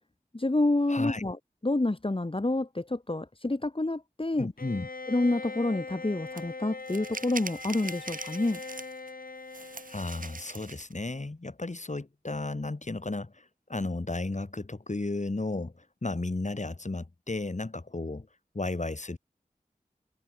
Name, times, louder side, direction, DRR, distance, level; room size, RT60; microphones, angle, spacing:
voice 1, 0.3-1.4 1.6-4.5 5.1-8.6, left 2 dB, 35° left, 2.3 m, -28 dB
voice 2, 0.9-1.2 4.4-4.9 9.9-18.3 18.5-19.2, left 2 dB, 50° left, 4.8 m, -34 dB
Bowed string instrument, 4.6-10.6, left 3 dB, 70° left, 3.3 m, -41 dB
sound 1, 6.4-6.5 6.9-9.1 9.5-10.9, right 4 dB, 65° right, 1.0 m, -42 dB
wide cardioid pair, 45°, 15 cm